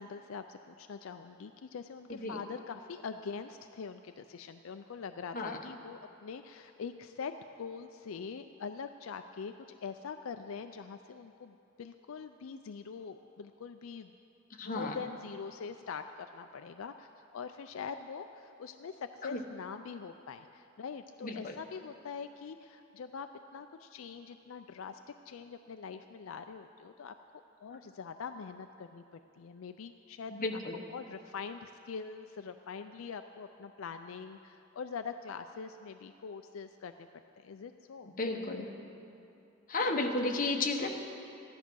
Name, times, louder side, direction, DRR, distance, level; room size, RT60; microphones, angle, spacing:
voice 1, 0.0-9.5 9.8-14.1 14.6-25.0 25.3-27.1 27.6-29.0 29.4-30.6 30.9-37.1 37.4-38.1, left 5 dB, 80° left, 8 dB, 0.4 m, -43 dB
voice 2, 14.6-15.0 19.3-19.4 21.2-21.5 30.3-30.8 38.2-38.7 39.7-40.9, left 2 dB, 40° left, 2 dB, 1.1 m, -33 dB
14.5 x 10.5 x 6.2 m, 2.7 s
head